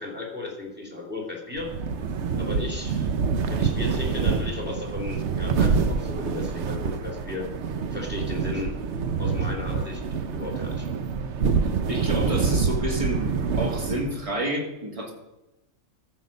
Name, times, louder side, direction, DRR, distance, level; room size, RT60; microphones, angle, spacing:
voice 1, 0.0-1.7 2.2-3.1 3.5-7.5 7.9-8.7 9.2-10.9, left 3 dB, 5° right, -1 dB, 2.6 m, -35 dB
sound 1, 1.6-14.3, right 5 dB, 60° right, 1.0 m, -26 dB
voice 2, 11.9-13.3 13.6-15.1, equal, 25° right, 0 dB, 2.2 m, -29 dB
14.0 x 6.5 x 5.3 m, 0.98 s
omnidirectional pair, 1.4 m